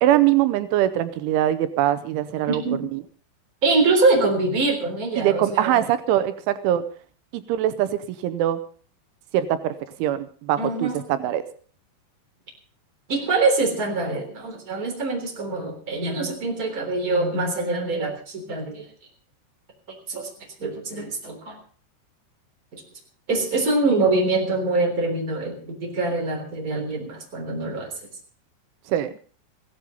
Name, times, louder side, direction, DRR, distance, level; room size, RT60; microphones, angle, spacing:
voice 1, 0.0-2.6 2.9-3.0 5.2-6.8 7.3-8.6 9.3-9.7 10.0-11.4 28.9-29.1, right 12 dB, 85° right, 12 dB, 3.2 m, -22 dB
voice 2, 2.5-2.8 3.6-5.8 10.6-11.0 13.1-18.9 20.1-20.3 20.6-21.6 22.7-22.8 23.3-27.9, right 3 dB, 20° right, 2 dB, 3.4 m, -24 dB
16.0 x 12.5 x 5.3 m, 0.43 s
omnidirectional pair, 5.4 m